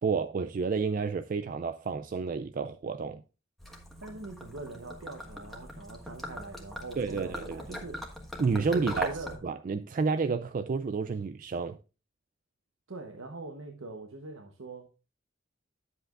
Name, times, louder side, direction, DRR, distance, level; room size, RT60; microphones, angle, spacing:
voice 1, 0.0-3.2 7.0-7.6 8.4-9.2 9.4-11.8, right 5 dB, 40° right, 0.3 m, -30 dB
Gurgling / Liquid, 3.6-9.4, equal, ahead, 1.4 m, -41 dB
voice 2, 4.0-8.2 8.7-9.4 12.9-14.9, right 3 dB, 85° right, 1.0 m, -43 dB
10.0 x 7.6 x 2.4 m
head